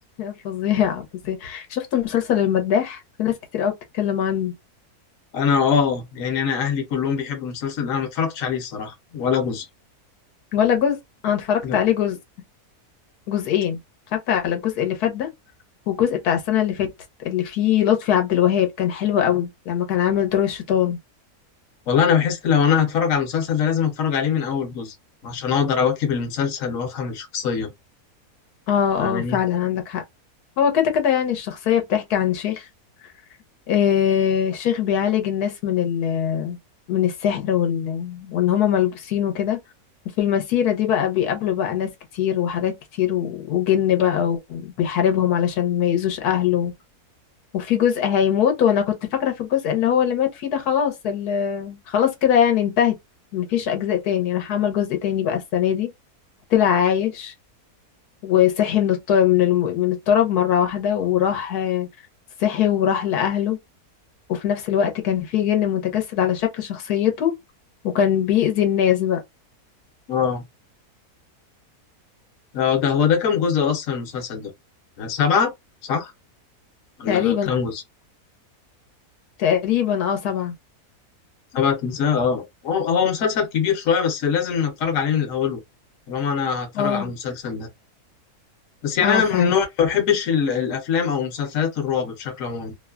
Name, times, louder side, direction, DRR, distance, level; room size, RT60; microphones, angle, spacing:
voice 1, 0.2-4.5 10.5-11.0 11.2-12.2 13.3-13.8 14.1-15.3 15.9-16.9 17.2-21.0 28.7-30.0 30.6-32.7 33.7-36.6 36.9-39.6 40.2-46.7 47.5-53.0 53.3-55.9 56.5-57.3 58.2-61.9 62.4-63.6 64.3-67.3 67.8-69.2 77.1-77.5 79.4-80.5 86.7-87.1 89.0-89.5, left 9 dB, 85° left, 1.3 m, -21 dB
voice 2, 5.3-9.6 11.6-11.8 21.9-24.9 25.2-27.7 29.0-29.4 70.1-70.4 72.5-74.5 75.0-75.5 75.8-76.1 77.0-77.8 81.5-85.6 86.1-87.7 88.8-92.7, left 7 dB, 60° left, 1.2 m, -22 dB
3.0 x 2.1 x 2.3 m
omnidirectional pair, 1.6 m